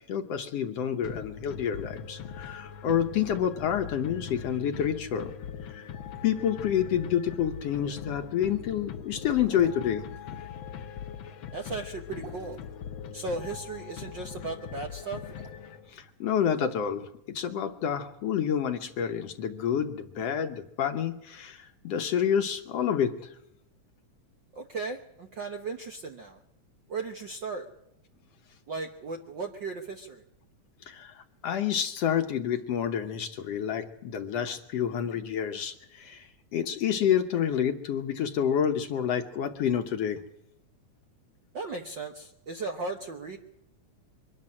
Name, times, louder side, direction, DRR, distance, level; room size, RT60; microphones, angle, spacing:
voice 1, 0.1-5.3 5.6-5.8 6.2-10.1 15.9-17.1 17.3-23.3 30.9-40.2, left 9 dB, 65° left, 6 dB, 1.9 m, -28 dB
sound 1, 1.0-16.1, left 7 dB, 85° left, 1.1 m, -41 dB
sound 2, 9.2-9.9 12.1-12.7 14.9-15.5, right 4 dB, 40° right, 2.3 m, -48 dB
voice 2, 11.5-12.6 13.1-15.2 24.5-26.4 26.9-27.7 28.7-30.2 41.5-43.4, right 3 dB, 55° right, 4 dB, 1.3 m, -36 dB
23.5 x 12.0 x 9.8 m, 0.83 s
omnidirectional pair, 3.4 m